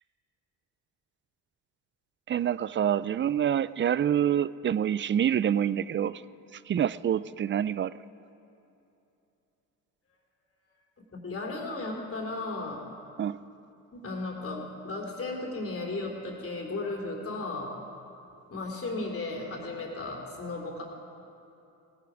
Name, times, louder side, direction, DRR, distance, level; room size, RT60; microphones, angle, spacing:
voice 1, 2.3-6.1 6.7-7.9 13.2-13.4, right 9 dB, 30° right, 18 dB, 0.4 m, -26 dB
voice 2, 11.0-12.8 13.9-17.7 18.5-20.8, left 2 dB, 35° left, 1 dB, 3.1 m, -35 dB
17.5 x 10.0 x 5.0 m, 2.8 s
supercardioid pair, 65°, 38 cm